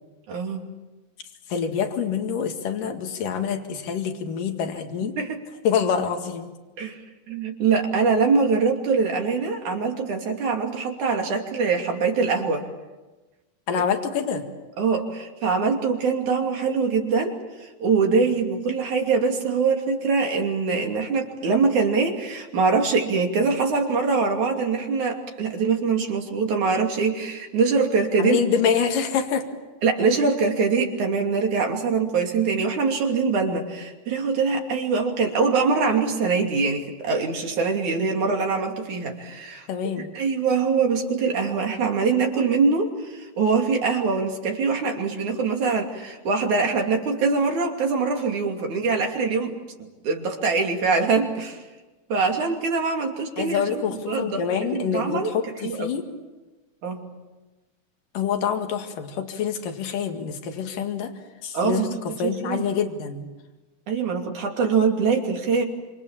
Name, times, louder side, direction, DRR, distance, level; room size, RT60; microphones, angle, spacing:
voice 1, 0.3-0.6 5.2-5.4 6.8-7.0 7.3-12.7 14.8-17.3 17.6-28.4 29.8-39.7 40.1-49.5 50.0-51.6 52.1-55.3 55.6-55.9 56.8-57.1 61.5-61.9 62.2-62.7 63.9-65.6, right 4 dB, 65° right, 2 dB, 4.2 m, -23 dB
voice 2, 1.5-5.1 5.7-6.6 13.7-14.5 28.2-29.4 39.7-40.1 53.4-56.0 58.1-61.1 61.4-61.9 62.2-63.3, left 7 dB, 85° left, 5 dB, 3.6 m, -26 dB
27.5 x 27.0 x 7.3 m, 1.2 s
omnidirectional pair, 3.7 m